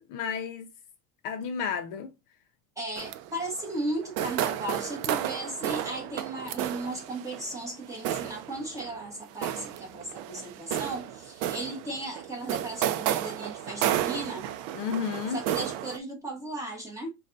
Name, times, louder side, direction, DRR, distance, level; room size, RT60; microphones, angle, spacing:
voice 1, 0.1-0.7 1.2-2.1 14.7-15.4, left 7 dB, 50° left, 0.5 m, -32 dB
voice 2, 2.8-14.5 15.3-17.1, right 1 dB, 10° right, 1.1 m, -36 dB
sound 1, 3.0-16.0, right 11 dB, 65° right, 0.5 m, -33 dB
5.3 x 2.3 x 2.5 m
cardioid pair, 155°, 40 cm